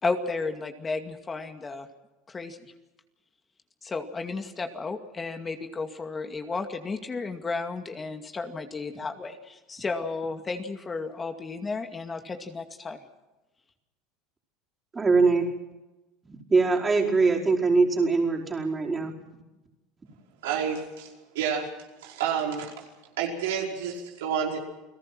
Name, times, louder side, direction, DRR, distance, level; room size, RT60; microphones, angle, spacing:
voice 1, 0.0-1.9 2.3-2.6 3.8-13.0, left 4 dB, 20° left, 6 dB, 2.3 m, -33 dB
voice 2, 14.9-15.5 16.3-19.1, right 4 dB, 20° right, -1 dB, 4.9 m, -22 dB
voice 3, 20.4-21.7 22.0-22.7 23.2-24.6, right 7 dB, 85° right, 0 dB, 5.1 m, -29 dB
29.5 x 17.5 x 6.1 m, 1.1 s
supercardioid pair, 100°, 0 cm